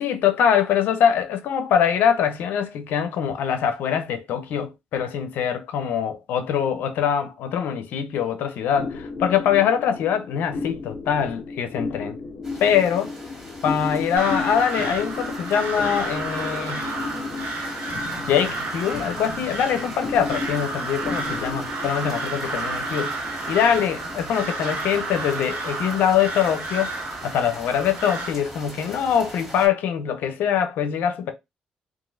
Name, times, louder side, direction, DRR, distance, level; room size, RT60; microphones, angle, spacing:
voice 1, 0.0-12.2 12.6-13.1 13.6-16.9 18.3-23.2 23.5-26.9 27.2-31.3, left 8 dB, 80° left, 0.5 m, -23 dB
sound 1, 8.7-27.5, left 4 dB, 55° left, 0.9 m, -34 dB
sound 2, 12.4-29.7, equal, 10° right, 2.1 m, -41 dB
Crow, 14.2-28.3, right 3 dB, 75° right, 1.0 m, -31 dB
3.0 x 2.4 x 2.5 m
supercardioid pair, 60°, 3 cm